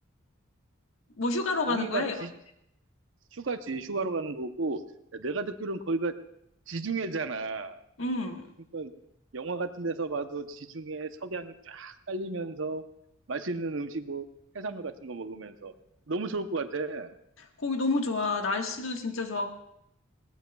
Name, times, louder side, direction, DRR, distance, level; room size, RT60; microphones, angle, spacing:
voice 1, 1.2-2.2 8.0-8.5 17.6-19.5, left 3 dB, 80° left, 3 dB, 1.5 m, -29 dB
voice 2, 1.7-2.3 3.3-4.8 5.1-6.1 6.7-7.8 8.7-8.9 9.3-12.8 13.3-14.3 14.5-15.7 16.1-17.1, right 3 dB, 70° right, 8 dB, 0.8 m, -33 dB
21.0 x 18.0 x 2.3 m, 0.76 s
head